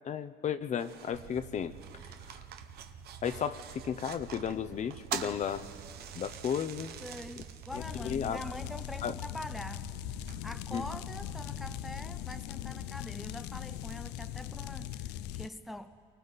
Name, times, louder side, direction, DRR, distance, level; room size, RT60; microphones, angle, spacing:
voice 1, 0.0-1.7 2.3-2.4 3.2-5.6 6.1-6.9 7.7-8.4 9.0-9.2 10.7-10.8, left 8 dB, 45° left, 11 dB, 0.7 m, -34 dB
sound 1, 0.8-14.9, right 9 dB, 70° right, 1.0 m, -48 dB
sound 2, 1.1-12.3, right 7 dB, 90° right, 1.2 m, -50 dB
voice 2, 7.0-9.9 10.4-16.0, left 1 dB, ahead, 11 dB, 0.5 m, -44 dB
sound 3, 7.7-15.5, left 13 dB, 90° left, 0.5 m, -40 dB
28.5 x 23.5 x 4.1 m, 2.5 s
cardioid pair, 110°, 17 cm